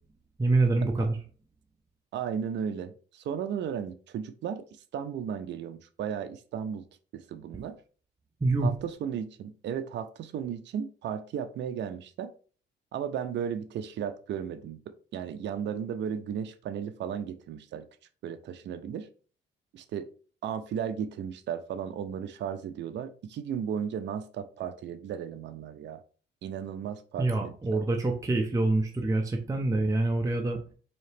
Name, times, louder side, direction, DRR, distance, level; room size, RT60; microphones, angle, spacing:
voice 1, 0.4-1.2 8.4-8.7 27.2-30.6, right 2 dB, 15° right, 3 dB, 0.6 m, -26 dB
voice 2, 2.1-4.6 4.9-6.8 7.1-7.8 8.6-12.3 12.9-17.8 18.2-19.1 19.7-20.1 20.4-26.0 26.4-27.8, right 8 dB, 65° right, 10 dB, 0.5 m, -35 dB
4.1 x 2.8 x 3.3 m, 0.40 s
cardioid pair, 90°, 20 cm